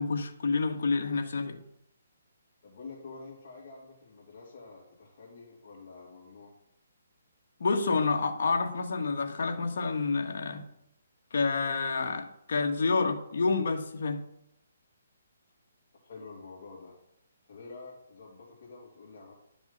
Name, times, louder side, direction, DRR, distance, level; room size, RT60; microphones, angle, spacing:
voice 1, 0.0-1.6 7.6-10.6 11.3-14.2, left 4 dB, 65° left, 3 dB, 1.6 m, -28 dB
voice 2, 2.6-6.5 16.0-16.9 17.4-19.3, left 4 dB, 45° left, -6 dB, 2.7 m, -48 dB
11.0 x 6.0 x 5.5 m, 0.78 s
hypercardioid pair, 160°, 0 cm